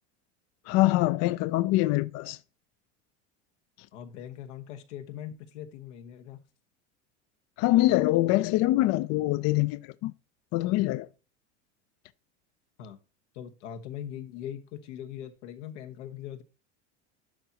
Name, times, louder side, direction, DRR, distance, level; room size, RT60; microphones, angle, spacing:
voice 1, 0.7-2.4 7.6-10.1 10.5-11.1, left 17 dB, 50° left, 0.4 m, -24 dB
voice 2, 3.9-6.4 12.8-13.0 13.3-16.4, left 10 dB, 85° left, 1.2 m, -41 dB
11.5 x 4.6 x 2.7 m
supercardioid pair, 105°, 35 cm